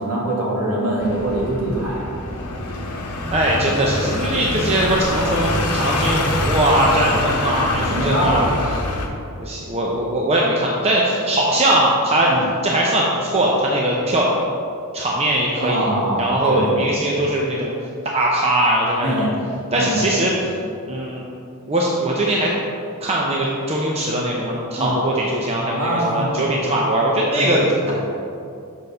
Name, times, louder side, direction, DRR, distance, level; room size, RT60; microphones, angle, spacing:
voice 1, 0.0-2.1 7.7-8.4 12.3-12.4 15.6-16.8 19.0-19.4 19.7-20.1 24.8-24.9 25.8-26.3 27.3-27.9, right 1 dB, 80° right, -4 dB, 1.7 m, -23 dB
sound 1, 1.0-9.1, left 2 dB, 80° left, 0.9 m, -25 dB
voice 2, 3.3-8.5 9.4-12.3 12.6-14.3 14.9-15.9 16.2-17.7 18.1-19.1 19.7-20.3 20.9-21.2 21.7-22.5 23.0-27.6, right 1 dB, 30° right, -3 dB, 0.6 m, -20 dB
6.4 x 4.5 x 5.4 m, 2.6 s
head